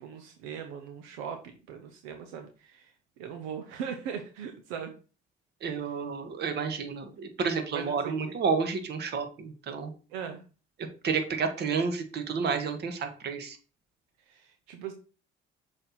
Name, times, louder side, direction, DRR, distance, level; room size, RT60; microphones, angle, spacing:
voice 1, 0.0-4.9 7.7-8.4 10.1-10.4 14.3-14.9, right 7 dB, 85° right, 6 dB, 0.8 m, -40 dB
voice 2, 5.6-9.9 11.0-13.6, right 5 dB, 55° right, 7 dB, 1.6 m, -30 dB
6.3 x 4.4 x 4.3 m, 0.35 s
supercardioid pair, 75°, 20 cm